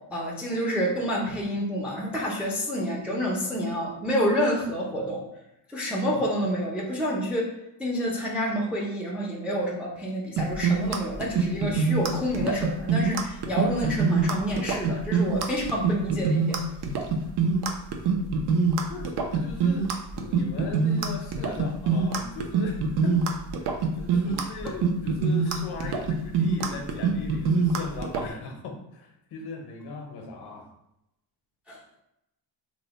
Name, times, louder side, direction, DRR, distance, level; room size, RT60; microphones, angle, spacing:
voice 1, 0.1-5.2 5.7-7.5 7.8-16.6 31.7-31.8, equal, 5° right, -3 dB, 0.4 m, -28 dB
sound 1, 10.4-28.3, right 5 dB, 55° right, 0.5 m, -24 dB
voice 2, 18.9-30.7, left 3 dB, 55° left, 3 dB, 0.7 m, -38 dB
2.9 x 2.1 x 4.0 m, 0.84 s
cardioid pair, 150°, 47 cm